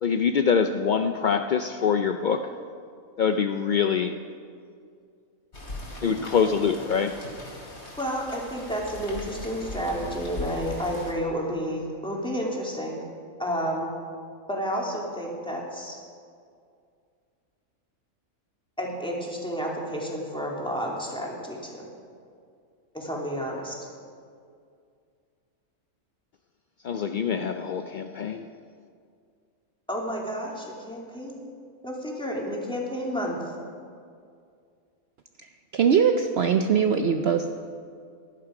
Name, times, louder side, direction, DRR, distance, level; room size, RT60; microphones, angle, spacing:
voice 1, 0.0-2.5 3.2-4.2 6.0-7.2 26.8-28.5, left 6 dB, 75° left, 7 dB, 0.4 m, -24 dB
Rain, 5.5-11.1, left 1 dB, 50° left, 3.1 m, -39 dB
voice 2, 8.0-13.0 13.4-13.9 14.5-16.0 18.8-21.9 22.9-23.8 29.9-31.5 31.8-33.5, equal, 5° left, -3 dB, 2.4 m, -31 dB
voice 3, 35.7-37.5, right 7 dB, 60° right, 6 dB, 0.8 m, -21 dB
18.0 x 11.5 x 4.9 m, 2.3 s
omnidirectional pair, 1.4 m